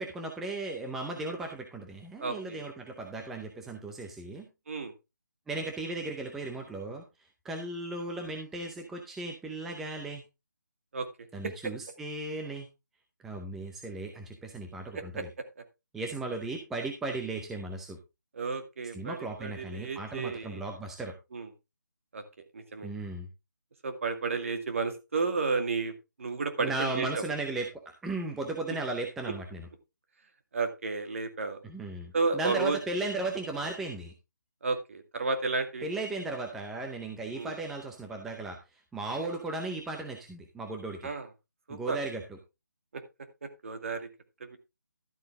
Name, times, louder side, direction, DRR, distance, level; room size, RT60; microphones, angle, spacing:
voice 1, 0.0-4.5 5.5-7.0 7.4-10.2 11.3-12.7 13.2-15.3 15.9-18.0 18.9-21.1 22.8-23.3 26.6-27.7 28.0-29.7 31.6-34.1 35.8-41.1 41.7-42.2, right 2 dB, 5° right, 2 dB, 0.6 m, -36 dB
voice 2, 2.2-2.6 4.7-4.9 10.9-11.1 11.4-11.5 14.9-15.2 18.3-20.6 21.3-21.5 22.1-22.2 22.5-22.9 23.8-25.9 26.2-27.2 30.5-31.6 32.1-32.8 34.6-35.9 37.3-37.5 41.0-41.3 41.7-42.0 42.9-43.0 43.4-44.1 44.5-44.6, right 4 dB, 45° right, 7 dB, 2.2 m, -32 dB
12.5 x 7.8 x 3.5 m, 0.25 s
figure-of-eight pair, 165°, 10 cm